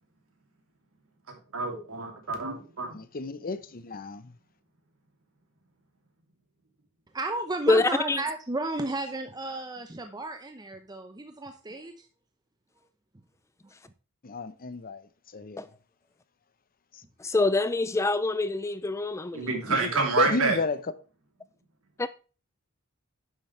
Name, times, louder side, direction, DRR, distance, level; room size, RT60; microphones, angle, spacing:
voice 1, 1.3-3.0 19.3-20.6, right 4 dB, 65° right, 2.7 m, -28 dB
voice 2, 2.9-4.3 14.2-15.0 15.3-15.6 19.7-19.9 20.2-20.8, left 4 dB, 40° left, 0.8 m, -31 dB
voice 3, 7.1-12.1, right 2 dB, 20° right, 0.7 m, -33 dB
voice 4, 7.7-8.2 15.6-15.7 17.2-19.5 19.8-19.9 22.0-22.1, left 2 dB, 15° left, 0.3 m, -25 dB
10.5 x 7.6 x 3.2 m
head